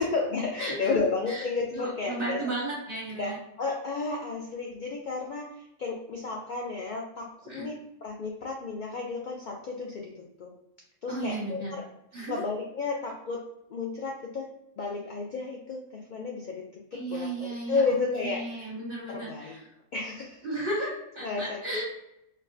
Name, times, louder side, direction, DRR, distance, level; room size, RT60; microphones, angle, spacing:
voice 1, 0.0-2.5 3.2-7.3 7.5-7.7 8.0-10.5 11.0-11.8 12.3-13.4 13.7-14.5 14.8-16.6 16.9-18.7 19.1-19.6 19.9-20.5 21.2-21.8, left 4 dB, 75° left, 0 dB, 0.4 m, -32 dB
voice 2, 0.6-1.4 1.7-3.4 7.4-7.7 11.1-11.8 12.1-12.4 16.9-19.7 20.4-21.8, right 2 dB, 45° right, -9 dB, 1.1 m, -34 dB
4.3 x 2.0 x 2.6 m, 0.83 s
omnidirectional pair, 1.3 m